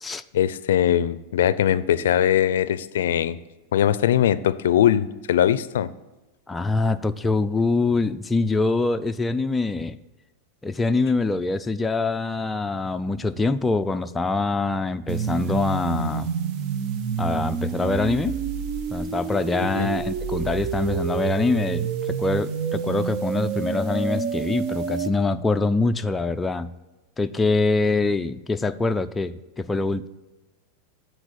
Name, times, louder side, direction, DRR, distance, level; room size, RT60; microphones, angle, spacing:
voice 1, 0.3-3.4 3.7-5.9 19.6-19.9, left 10 dB, 85° left, 16 dB, 0.4 m, -21 dB
voice 2, 6.5-10.0 10.6-16.3 17.2-18.4 18.9-26.7 27.2-30.1, left 3 dB, 10° left, 8 dB, 0.3 m, -24 dB
sound 1, 15.1-25.1, right 6 dB, 45° right, 0.8 m, -28 dB
8.7 x 4.4 x 6.6 m, 1.1 s
supercardioid pair, 130°, 0 cm